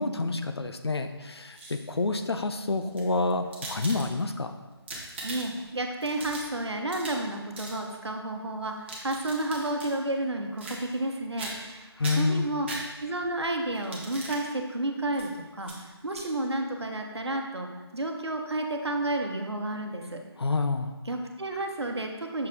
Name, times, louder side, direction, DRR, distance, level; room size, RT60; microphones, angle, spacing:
voice 1, 0.0-4.5 12.0-12.5 20.4-20.9, left 3 dB, 70° left, 7 dB, 0.6 m, -28 dB
sound 1, 1.3-2.0 2.8-4.4 4.7-5.7 6.0-7.3 7.5-7.8 8.6-9.9 10.6-11.1 11.4-11.7 12.0-13.2 13.7-14.4 15.1-15.3 15.6-15.8 16.1-16.3, right 2 dB, 25° right, 1.0 m, -40 dB
voice 2, 5.2-12.7 13.0-20.2 21.1-22.5, right 1 dB, 75° right, 3 dB, 1.0 m, -31 dB
6.4 x 4.4 x 3.6 m, 1.2 s
figure-of-eight pair, 155°, 14 cm